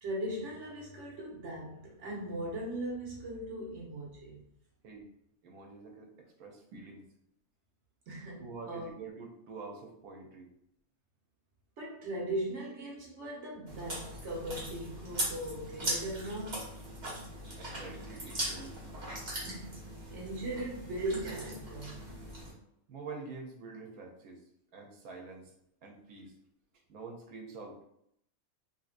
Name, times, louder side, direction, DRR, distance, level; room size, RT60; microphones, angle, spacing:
voice 1, 0.0-4.4 8.1-8.9 11.8-16.6 19.4-19.7 20.1-22.0, right 1 dB, 60° right, -3 dB, 1.2 m, -39 dB
voice 2, 5.4-7.1 8.4-10.5 17.5-18.8 22.9-25.5 25.8-26.3 26.9-27.8, right 4 dB, 90° right, 2 dB, 1.1 m, -46 dB
Chewing mastication, 13.7-22.5, right 1 dB, 35° right, 1.0 m, -40 dB
3.4 x 2.6 x 2.4 m, 0.74 s
omnidirectional pair, 1.5 m